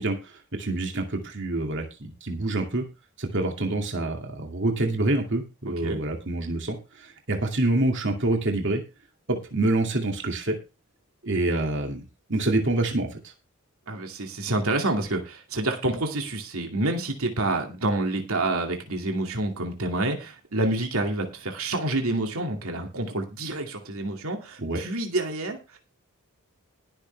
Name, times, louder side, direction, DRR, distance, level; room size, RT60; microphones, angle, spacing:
voice 1, 0.0-2.8 3.2-8.8 9.3-10.6 11.2-12.0 12.3-13.2 24.6-24.8, right 2 dB, 55° right, 3 dB, 2.3 m, -26 dB
voice 2, 13.9-25.8, right 2 dB, 75° right, 3 dB, 2.4 m, -28 dB
19.5 x 6.7 x 3.4 m, 0.29 s
head